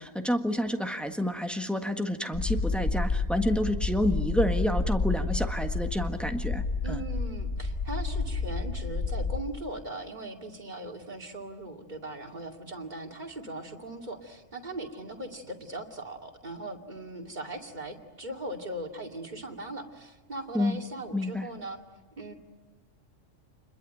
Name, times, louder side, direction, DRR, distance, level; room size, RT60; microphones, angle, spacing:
voice 1, 0.0-7.0 20.5-20.8 21.1-21.5, equal, ahead, 5 dB, 1.5 m, -29 dB
sound 1, 2.3-9.4, left 3 dB, 55° left, 2.1 m, -30 dB
voice 2, 6.8-21.8 22.2-22.3, right 1 dB, 35° right, 2 dB, 2.6 m, -39 dB
28.0 x 21.5 x 9.1 m, 1.2 s
omnidirectional pair, 1.3 m